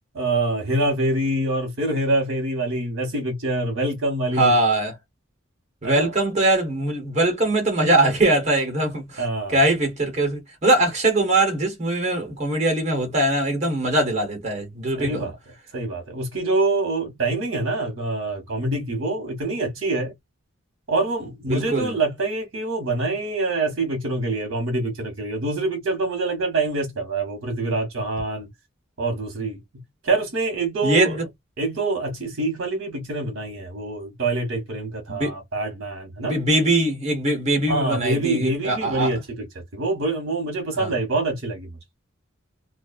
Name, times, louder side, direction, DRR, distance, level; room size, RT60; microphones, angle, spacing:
voice 1, 0.1-4.5 5.8-6.1 9.2-9.6 15.0-15.4 15.7-20.1 20.9-28.5 29.0-29.6 30.0-31.2 31.6-36.4 37.7-39.5 39.7-41.8, right 2 dB, 60° right, 1.1 m, -25 dB
voice 2, 4.4-5.0 5.8-9.3 9.5-15.3 21.5-22.0 30.8-31.2 35.1-35.3 36.2-39.1 40.8-40.9, right 2 dB, 35° right, 1.1 m, -21 dB
2.4 x 2.2 x 2.3 m
head